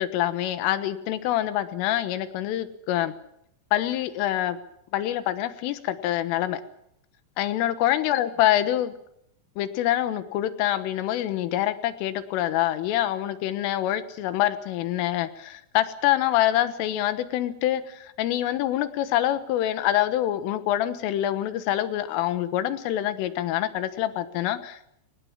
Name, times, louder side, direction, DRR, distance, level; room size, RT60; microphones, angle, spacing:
voice 1, 0.0-3.1 3.7-4.6 4.9-6.6 7.4-8.9 9.6-25.0, left 13 dB, 85° left, 12 dB, 3.8 m, -26 dB
23.5 x 19.5 x 7.3 m, 0.76 s
omnidirectional pair, 5.7 m